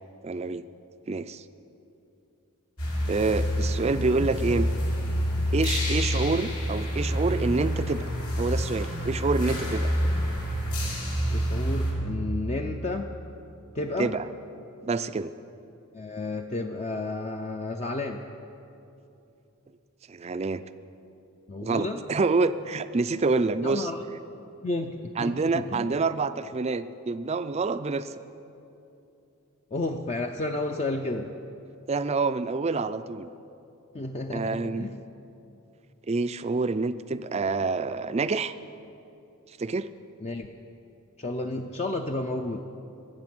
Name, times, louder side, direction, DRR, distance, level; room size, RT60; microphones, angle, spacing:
voice 1, 0.2-0.6 1.1-1.4 3.1-4.7 5.5-8.1 8.4-9.9 14.0-14.3 14.8-15.3 20.1-20.6 21.6-23.9 25.2-28.1 31.9-33.3 34.3-34.9 36.1-38.5 39.6-39.9, right 3 dB, 30° right, 12 dB, 0.4 m, -27 dB
sound 1, 2.8-11.9, equal, 80° left, 3.2 m, -27 dB
voice 2, 11.3-13.1 13.7-14.2 15.9-18.2 21.5-22.0 23.6-24.0 24.6-25.9 29.7-31.3 33.9-35.0 40.2-40.5 41.2-42.6, left 2 dB, 30° left, 4 dB, 0.5 m, -31 dB
20.5 x 8.0 x 6.1 m, 2.8 s
head